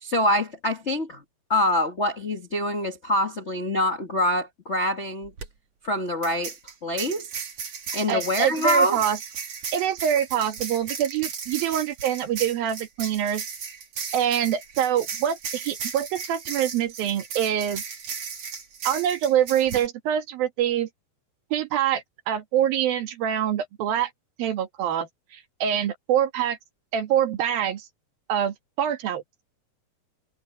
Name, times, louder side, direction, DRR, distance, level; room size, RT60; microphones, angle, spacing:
voice 1, 0.0-1.2 1.5-5.3 5.8-6.5 6.8-7.3 7.9-9.0, left 1 dB, 55° left, 0.7 m, -25 dB
sound 1, 5.2-5.5 6.2-19.9, right 6 dB, 50° right, 3.3 m, -36 dB
voice 2, 8.1-9.2 9.7-13.4 14.1-17.8 18.9-20.9 21.5-24.1 24.4-26.6 26.9-27.9 28.3-29.2, right 10 dB, 90° right, 3.6 m, -25 dB
omnidirectional pair, 4.0 m